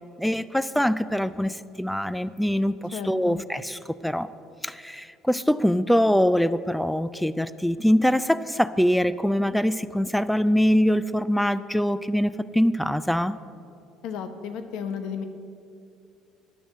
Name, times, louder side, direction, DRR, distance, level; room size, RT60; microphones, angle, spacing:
voice 1, 0.2-4.3 4.6-13.4, equal, 5° left, 15 dB, 0.3 m, -23 dB
voice 2, 2.9-3.4 14.0-15.2, left 7 dB, 70° left, 8 dB, 0.9 m, -33 dB
9.7 x 7.0 x 7.6 m, 2.6 s
hypercardioid pair, 70°, 0 cm